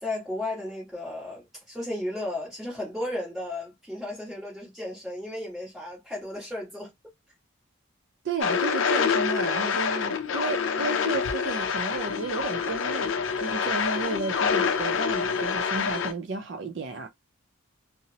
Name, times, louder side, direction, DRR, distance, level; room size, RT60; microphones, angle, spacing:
voice 1, 0.0-6.9, left 1 dB, ahead, 1.4 m, -34 dB
voice 2, 8.2-17.1, right 4 dB, 60° right, 0.4 m, -33 dB
sound 1, 8.4-16.1, left 6 dB, 75° left, 0.4 m, -26 dB
2.8 x 2.0 x 2.8 m
head